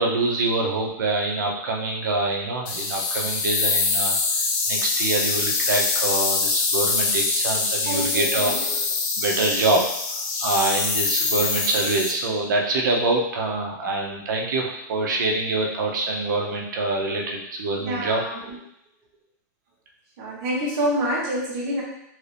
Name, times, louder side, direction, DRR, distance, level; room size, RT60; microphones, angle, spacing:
voice 1, 0.0-4.2 4.7-8.5 9.2-9.8 10.4-18.2, right 2 dB, 85° right, 0 dB, 0.8 m, -25 dB
sound 1, 2.7-12.1, left 4 dB, 30° left, 0.4 m, -24 dB
voice 2, 7.6-8.8 16.8-16.9 17.7-18.6 20.2-21.8, equal, 40° right, -5 dB, 1.1 m, -28 dB
3.2 x 2.6 x 3.4 m, 0.79 s
supercardioid pair, 180°, 10 cm